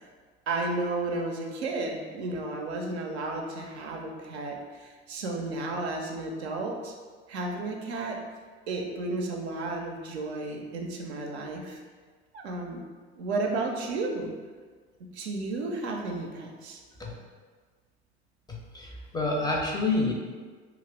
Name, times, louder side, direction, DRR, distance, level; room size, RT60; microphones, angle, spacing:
voice 1, 0.5-6.9 7.3-8.2 8.7-11.8 12.3-12.8 13.1-14.3 15.0-16.8, right 2 dB, 80° right, 1 dB, 0.5 m, -33 dB
voice 2, 18.5-20.1, left 2 dB, 15° left, -1 dB, 0.4 m, -28 dB
2.4 x 2.4 x 3.3 m, 1.5 s
figure-of-eight pair, 65°, 33 cm